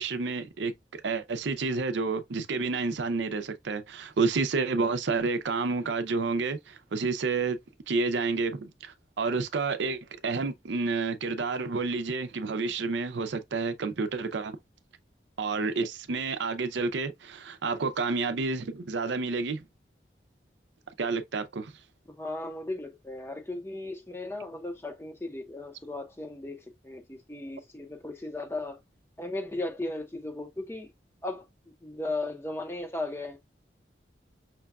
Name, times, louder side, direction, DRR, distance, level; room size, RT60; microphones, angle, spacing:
voice 1, 0.0-7.6 7.9-14.6 15.4-19.6 21.0-21.7, right 4 dB, 85° right, 0.5 m, -30 dB
voice 2, 22.2-28.8 29.2-30.9 31.2-31.5 31.8-33.4, left 2 dB, 15° left, 0.6 m, -36 dB
5.8 x 2.3 x 2.3 m
head